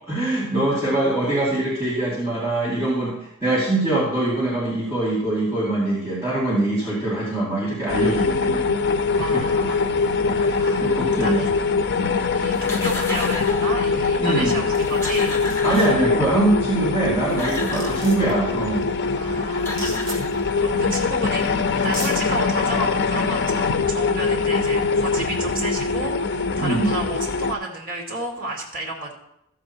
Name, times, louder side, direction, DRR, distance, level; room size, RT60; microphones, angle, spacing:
voice 1, 0.1-8.7 9.1-9.4 10.2-11.5 14.2-14.6 15.6-18.9 26.6-26.9, right 2 dB, 15° right, -8 dB, 2.4 m, -23 dB
sound 1, 7.9-27.5, left 4 dB, 55° left, 0.6 m, -23 dB
voice 2, 9.2-10.1 10.5-11.5 12.3-15.4 17.7-18.2 19.1-29.1, right 1 dB, 45° right, 0 dB, 2.3 m, -32 dB
sound 2, 12.5-13.8 14.5-14.6 14.8-16.4 17.0-18.2 19.2-19.3 19.6-20.8, left 3 dB, 10° left, 1.3 m, -34 dB
sound 3, 14.7-15.2 15.4-15.9 17.1-17.2 17.4-18.3 19.7-20.2 21.3-21.4 21.8-22.1, right 2 dB, 65° right, 3.6 m, -35 dB
14.0 x 7.3 x 4.3 m, 0.79 s
head